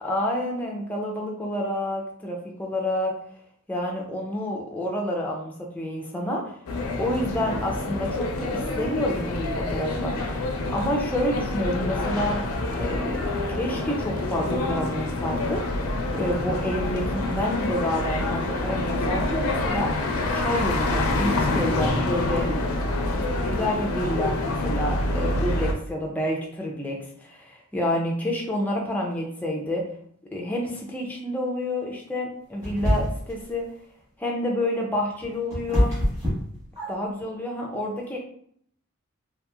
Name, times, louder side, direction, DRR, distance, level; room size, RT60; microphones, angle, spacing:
voice 1, 0.0-3.1 3.7-6.6 7.0-10.2 10.7-12.4 12.8-13.2 13.5-15.6 16.1-20.0 20.3-22.6 23.2-29.9 30.3-33.6 34.2-35.9 36.9-38.2, left 1 dB, 5° left, -2 dB, 0.4 m, -29 dB
sound 1, 6.7-25.7, left 2 dB, 85° left, 0.5 m, -27 dB
sound 2, 32.6-33.4 34.9-37.2, equal, 15° right, 1.1 m, -25 dB
2.9 x 2.5 x 2.3 m, 0.65 s
head